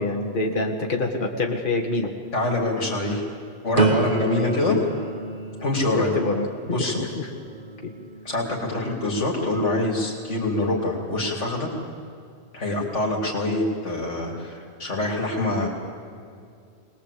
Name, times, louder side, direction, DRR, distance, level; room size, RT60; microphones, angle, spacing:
voice 1, 0.0-2.1 5.9-7.3 7.8-7.9, left 2 dB, 45° left, 1 dB, 2.0 m, -26 dB
voice 2, 2.3-3.2 3.6-4.8 5.6-6.2 6.7-7.0 8.2-11.7 12.5-15.7, left 2 dB, 85° left, -1 dB, 3.4 m, -25 dB
sound 1, 3.7-9.6 10.1-10.6, right 3 dB, 40° right, 1.7 m, -30 dB
23.5 x 20.0 x 8.4 m, 2.4 s
omnidirectional pair, 1.2 m